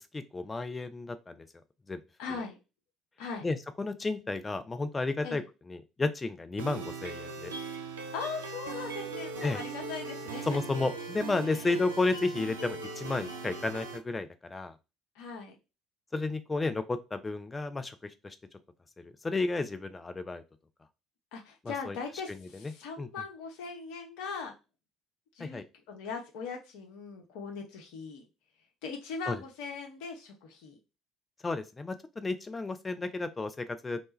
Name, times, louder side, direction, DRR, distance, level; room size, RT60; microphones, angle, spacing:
voice 1, 0.1-1.5 1.9-2.0 3.4-7.5 9.4-9.6 10.5-14.7 16.1-18.4 19.0-20.4 21.6-22.0 22.3-22.7 23.0-23.1 25.4-25.6 29.3-29.4 31.4-34.0, left 3 dB, 20° left, 10 dB, 0.4 m, -32 dB
voice 2, 2.2-2.6 3.2-3.5 5.2-5.4 8.1-10.6 11.5-11.7 15.2-15.6 21.3-24.6 25.4-28.2 28.8-30.8, left 5 dB, 65° left, 2 dB, 0.6 m, -40 dB
sound 1, 6.6-14.0, right 4 dB, 80° right, 0.4 m, -39 dB
2.1 x 2.1 x 3.1 m, 0.28 s
figure-of-eight pair, 55°, 0 cm